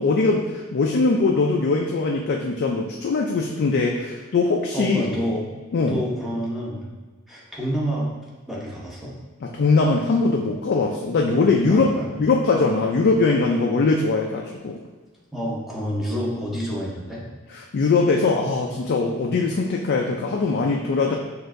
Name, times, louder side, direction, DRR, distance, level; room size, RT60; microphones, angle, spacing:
voice 1, 0.0-5.1 5.7-6.0 9.4-14.8 17.5-21.2, left 3 dB, 50° left, 0 dB, 0.4 m, -21 dB
voice 2, 4.7-5.5 5.8-6.8 7.3-8.1 8.5-9.1 11.7-12.1 15.3-17.2, equal, ahead, -6 dB, 0.8 m, -28 dB
6.3 x 2.6 x 2.5 m, 1.3 s
head